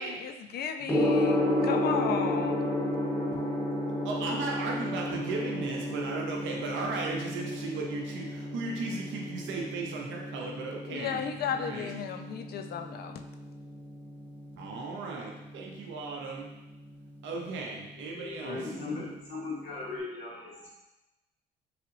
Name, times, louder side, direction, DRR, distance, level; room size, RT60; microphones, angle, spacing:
voice 1, 0.0-2.7 10.9-13.2, left 7 dB, 50° left, 6 dB, 0.4 m, -34 dB
Gong, 0.9-19.9, left 1 dB, 10° left, 0.7 m, -33 dB
voice 2, 4.0-11.9 14.6-16.5 17.2-18.6, right 3 dB, 70° right, -1 dB, 0.7 m, -36 dB
voice 3, 18.1-20.7, left 3 dB, 80° left, -6 dB, 0.9 m, -38 dB
3.2 x 2.8 x 2.5 m, 1.0 s
supercardioid pair, 65°, 21 cm